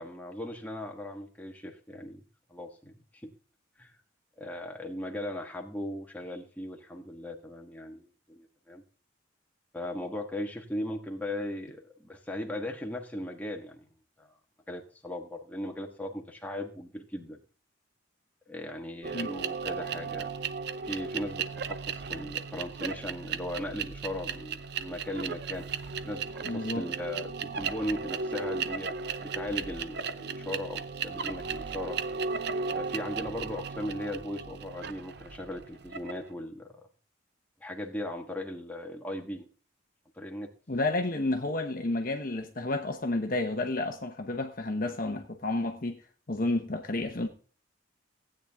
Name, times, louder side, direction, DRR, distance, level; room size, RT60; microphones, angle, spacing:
voice 1, 0.0-2.2 2.5-3.0 3.2-3.3 3.8-3.9 4.4-8.8 9.7-13.8 14.2-14.4 14.7-17.4 18.5-20.3 20.8-25.7 26.0-32.0 32.6-36.8 37.6-39.5 40.1-40.5, left 1 dB, 10° left, 1.4 m, -38 dB
sound 1, 19.0-36.3, right 5 dB, 55° right, 0.6 m, -36 dB
voice 2, 26.4-26.9 40.7-46.0 46.3-47.3, left 2 dB, 45° left, 1.0 m, -31 dB
15.5 x 8.8 x 3.5 m
head